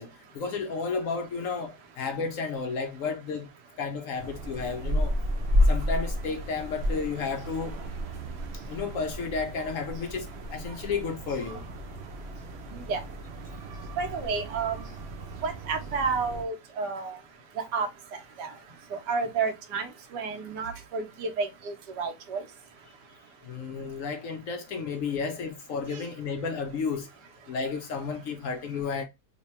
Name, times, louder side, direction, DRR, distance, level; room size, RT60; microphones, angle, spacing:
voice 1, 0.0-3.5 3.8-5.1 5.6-7.8 8.7-11.7 23.4-27.1 27.5-29.0, left 5 dB, 70° left, 0.8 m, -32 dB
sound 1, 4.2-16.4, equal, 55° right, 0.8 m, -32 dB
voice 2, 12.7-13.0 14.0-14.9 15.4-17.2 17.5-18.5 18.9-22.4 25.9-26.1, right 5 dB, 85° right, 1.4 m, -31 dB
3.3 x 2.2 x 4.2 m
omnidirectional pair, 1.7 m